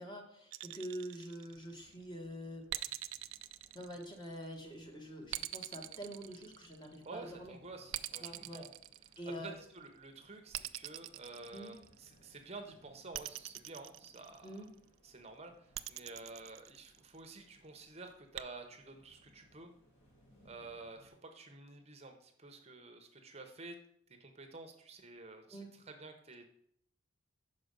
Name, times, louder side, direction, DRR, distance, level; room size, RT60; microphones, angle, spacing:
voice 1, 0.0-2.6 3.7-7.6 8.2-8.6 9.2-9.5 11.5-11.7 14.4-14.7 25.5-25.7, equal, 20° left, 2 dB, 1.2 m, -45 dB
sound 1, 0.5-1.9 2.7-4.5 5.3-7.1 7.9-9.6 10.5-12.2 13.1-14.7 15.7-17.3 18.4-18.5, right 15 dB, 70° right, 0.3 m, -44 dB
sound 2, 1.4-21.1, equal, 55° left, 3.2 m, -68 dB
voice 2, 7.0-8.7 9.4-14.5 15.0-19.7 20.4-23.7 24.2-26.4, right 3 dB, 30° right, 5 dB, 0.8 m, -50 dB
5.5 x 5.0 x 6.6 m, 0.69 s
head